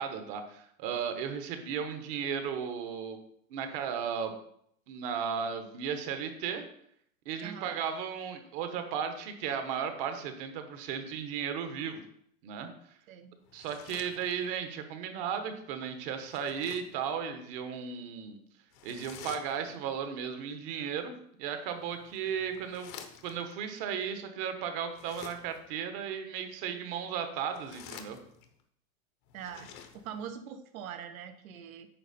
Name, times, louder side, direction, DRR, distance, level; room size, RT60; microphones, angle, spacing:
voice 1, 0.0-3.2 3.5-4.3 4.9-6.7 7.2-12.0 12.4-12.7 13.5-18.4 18.8-21.1 21.4-22.9 23.2-28.2, right 7 dB, 40° right, 7 dB, 1.2 m, -35 dB
voice 2, 7.4-7.7 13.1-13.3 29.3-31.9, right 8 dB, 70° right, 7 dB, 1.2 m, -43 dB
sound 1, 13.4-14.7 16.2-17.0 18.7-19.9 21.7-23.5 24.9-25.7 27.3-28.6 29.3-30.3, left 8 dB, 35° left, 0.9 m, -50 dB
9.1 x 5.6 x 4.3 m, 0.69 s
supercardioid pair, 160°, 43 cm